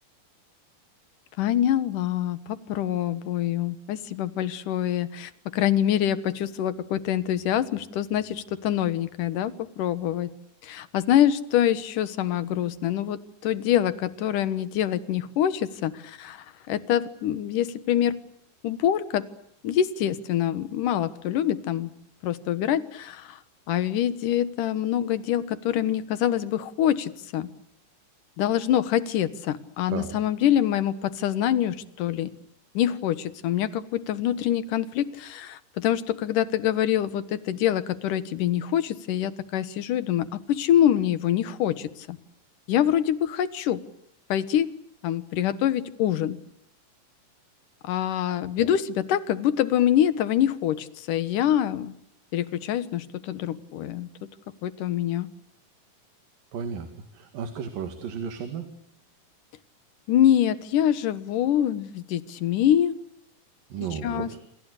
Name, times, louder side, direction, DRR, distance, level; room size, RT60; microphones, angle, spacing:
voice 1, 1.4-10.3 10.6-18.2 18.6-19.2 19.6-21.9 22.2-23.4 23.7-27.5 28.4-32.3 32.7-42.2 42.7-43.8 44.3-44.7 45.0-46.4 47.8-51.9 52.3-54.1 54.6-55.3 60.1-62.9 64.0-64.3, left 11 dB, 75° left, 14 dB, 2.8 m, -25 dB
voice 2, 29.9-30.2 48.6-48.7 56.5-58.7 63.7-64.4, right 7 dB, 90° right, 7 dB, 3.8 m, -34 dB
27.5 x 27.5 x 6.6 m, 0.72 s
omnidirectional pair, 3.9 m